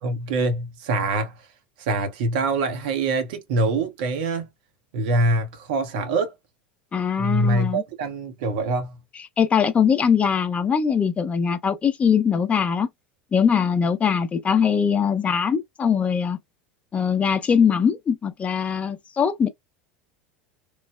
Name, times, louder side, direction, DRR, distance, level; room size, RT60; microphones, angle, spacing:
voice 1, 0.0-1.3 1.8-4.5 4.9-6.3 7.2-9.0, right 2 dB, 65° right, 0.6 m, -24 dB
voice 2, 6.9-7.8 9.4-12.9 13.3-16.4 16.9-19.5, left 7 dB, 25° left, 0.5 m, -21 dB
3.1 x 2.0 x 2.2 m
figure-of-eight pair, 80°, 5 cm